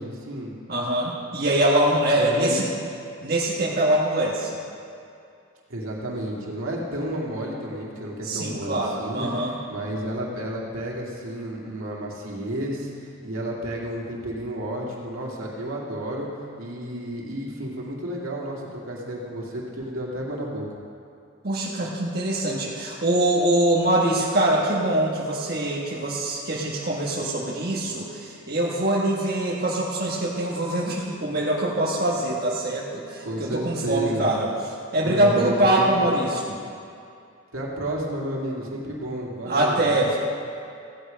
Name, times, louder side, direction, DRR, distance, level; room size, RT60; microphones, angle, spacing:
voice 1, 0.0-0.5 2.2-2.6 5.7-9.3 9.7-16.3 16.6-20.7 33.2-34.2 35.0-36.2 37.5-40.1, right 1 dB, 80° right, -3 dB, 2.4 m, -31 dB
voice 2, 0.7-2.7 3.2-4.6 8.2-9.6 21.4-34.5 34.9-36.5 39.4-40.2, right 1 dB, 45° right, -5 dB, 1.3 m, -23 dB
15.0 x 8.9 x 5.2 m, 2.5 s
head